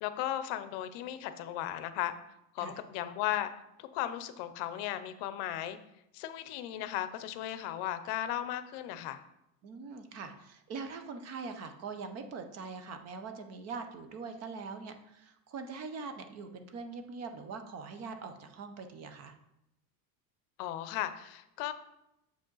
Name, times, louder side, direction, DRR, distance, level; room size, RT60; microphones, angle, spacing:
voice 1, 0.0-2.1 2.5-3.5 3.8-5.8 6.1-9.2 20.6-21.7, left 12 dB, 65° left, 11 dB, 0.7 m, -36 dB
voice 2, 9.6-19.3, right 4 dB, 35° right, 7 dB, 0.6 m, -42 dB
6.9 x 5.1 x 3.8 m, 0.86 s
cardioid pair, 165°, 45 cm